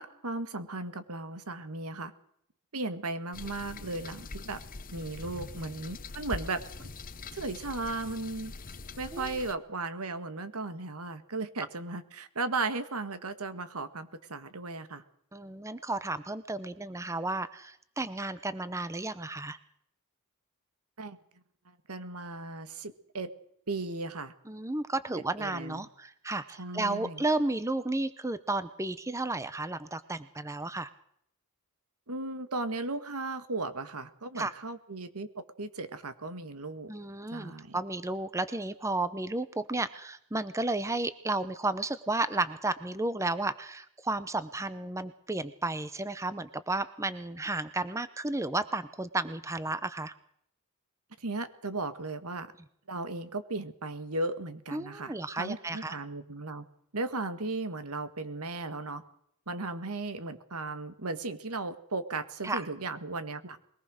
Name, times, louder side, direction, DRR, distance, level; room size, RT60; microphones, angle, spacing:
voice 1, 0.0-2.1 2.7-4.6 4.9-6.9 7.3-8.5 9.0-15.0 21.0-21.2 21.9-23.3 23.7-24.3 25.1-25.8 26.6-27.2 32.1-35.3 35.6-36.9 37.3-37.8 51.2-52.5 52.9-56.6 56.9-59.0 59.5-63.6, right 3 dB, 80° right, 11 dB, 1.8 m, -36 dB
sound 1, 3.3-9.5, left 3 dB, 40° left, 0.9 m, -43 dB
voice 2, 15.3-19.6 24.5-30.9 34.4-34.5 36.9-50.1 54.7-56.0 62.4-62.7, right 2 dB, 15° right, 14 dB, 0.7 m, -33 dB
22.5 x 18.5 x 6.4 m, 0.69 s
head